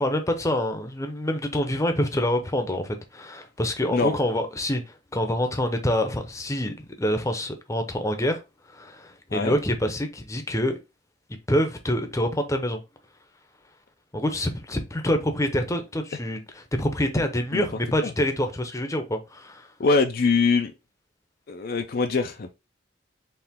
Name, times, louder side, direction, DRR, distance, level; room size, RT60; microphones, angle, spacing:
voice 1, 0.0-8.4 8.7-10.8 11.5-12.8 14.1-19.7, left 1 dB, 15° left, 0.7 m, -26 dB
voice 2, 19.8-20.7 21.5-22.5, left 4 dB, 55° left, 0.5 m, -23 dB
4.6 x 3.2 x 3.6 m
head